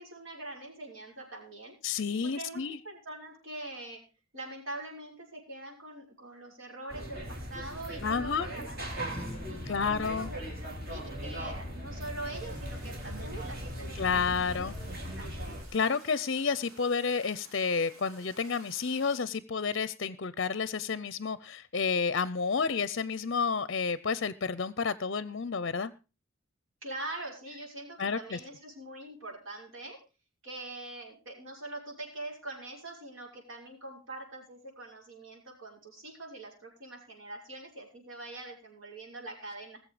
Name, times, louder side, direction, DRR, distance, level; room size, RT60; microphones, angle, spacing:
voice 1, 0.0-1.8 2.2-4.0 4.3-9.0 9.5-15.3 26.8-30.0 30.4-39.8, right 2 dB, 70° right, -1 dB, 6.2 m, -43 dB
voice 2, 1.8-2.8 8.0-8.5 9.7-10.3 14.0-14.7 15.7-25.9 28.0-28.4, left 5 dB, 55° left, 17 dB, 0.6 m, -30 dB
sound 1, 6.9-15.6, equal, 45° right, 3.8 m, -39 dB
sound 2, 8.8-13.6, left 1 dB, 5° left, 1.8 m, -48 dB
sound 3, 12.3-19.2, right 2 dB, 90° right, 4.4 m, -54 dB
20.5 x 7.4 x 4.9 m, 0.33 s
head